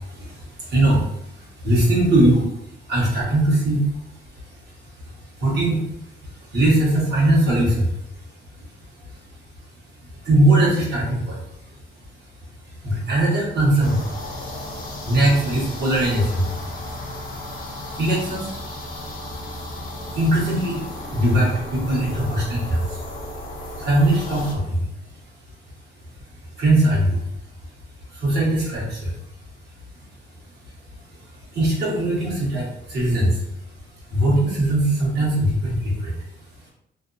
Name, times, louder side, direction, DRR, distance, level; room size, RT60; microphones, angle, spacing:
voice 1, 0.0-36.7, right 1 dB, 55° right, -4 dB, 1.2 m, -23 dB
sound 1, 13.8-24.5, left 1 dB, 45° left, 0.7 m, -34 dB
2.6 x 2.2 x 2.5 m, 0.78 s
cardioid pair, 90°, 20 cm